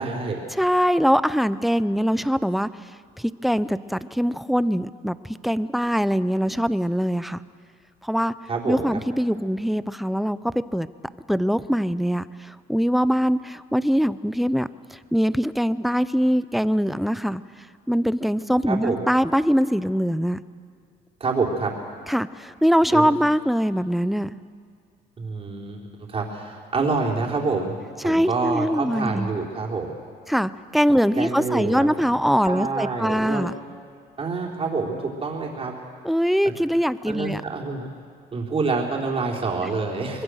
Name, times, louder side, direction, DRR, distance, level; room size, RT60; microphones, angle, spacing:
voice 1, 0.0-0.4 8.5-8.8 18.7-19.0 21.2-21.8 22.9-23.1 25.2-27.8 28.0-29.9 31.1-32.0 32.4-33.5 34.2-35.8 37.1-37.9 38.3-40.2, right 4 dB, 35° right, -1 dB, 4.0 m, -27 dB
voice 2, 0.6-2.7 3.2-7.4 8.0-8.3 8.7-10.9 11.3-17.4 17.9-20.4 22.1-24.4 28.0-29.3 30.3-33.5 36.0-37.4, equal, ahead, 15 dB, 0.6 m, -22 dB
25.0 x 21.0 x 6.5 m, 2.1 s
cardioid pair, 110°, 17 cm